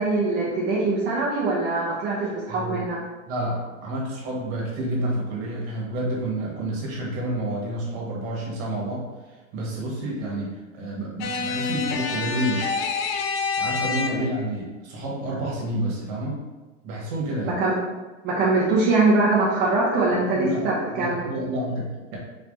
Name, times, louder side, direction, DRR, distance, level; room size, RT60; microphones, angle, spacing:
voice 1, 0.0-3.0 17.4-17.7 18.2-21.3, right 3 dB, 25° right, -6 dB, 0.7 m, -22 dB
voice 2, 2.5-2.8 3.2-9.1 9.5-12.8 13.6-16.4 16.8-17.6 20.1-20.6 20.9-22.2, right 1 dB, 45° right, -3 dB, 1.4 m, -29 dB
sound 1, 11.2-14.5, left 4 dB, 50° left, 0.5 m, -27 dB
4.1 x 3.3 x 2.6 m, 1.2 s
supercardioid pair, 135°, 39 cm